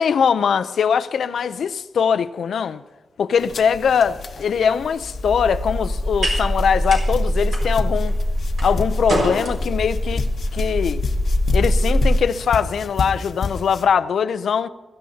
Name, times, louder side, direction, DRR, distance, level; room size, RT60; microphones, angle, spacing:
voice 1, 0.0-2.8 3.2-8.1 8.6-11.0 11.5-14.7, left 7 dB, 80° left, 0.5 m, -21 dB
sound 1, 3.4-13.9, left 5 dB, 60° left, 1.0 m, -32 dB
sound 2, 4.7-13.1, right 1 dB, 60° right, 5.2 m, -32 dB
sound 3, 4.8-12.2, equal, 15° right, 1.8 m, -23 dB
23.0 x 14.5 x 2.8 m
wide cardioid pair, 135°, 0 cm